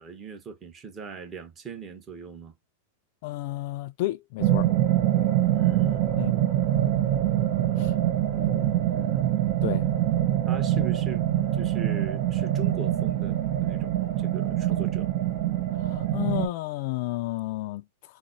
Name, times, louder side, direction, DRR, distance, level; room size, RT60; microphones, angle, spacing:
voice 1, 0.0-2.5 5.5-6.1 8.2-9.3 10.5-15.1, right 6 dB, 25° right, 1.0 m, -40 dB
voice 2, 3.2-4.7 6.2-6.4 7.8-7.9 9.6-9.9 15.7-18.2, left 17 dB, 55° left, 0.3 m, -32 dB
sound 1, 4.4-16.5, right 12 dB, 45° right, 0.7 m, -24 dB
4.0 x 2.1 x 2.6 m
hypercardioid pair, 120°, 0 cm